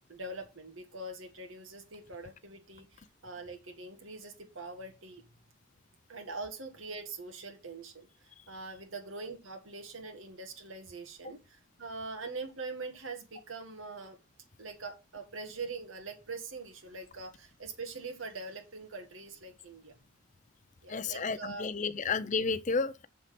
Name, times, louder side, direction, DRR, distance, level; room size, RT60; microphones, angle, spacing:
voice 1, 0.1-5.2 6.1-8.1 8.5-14.2 14.6-19.9 20.8-21.7 21.9-22.1, right 3 dB, 75° right, 1.8 m, -43 dB
voice 2, 20.9-23.1, left 4 dB, 35° left, 0.6 m, -31 dB
7.4 x 5.8 x 6.0 m
head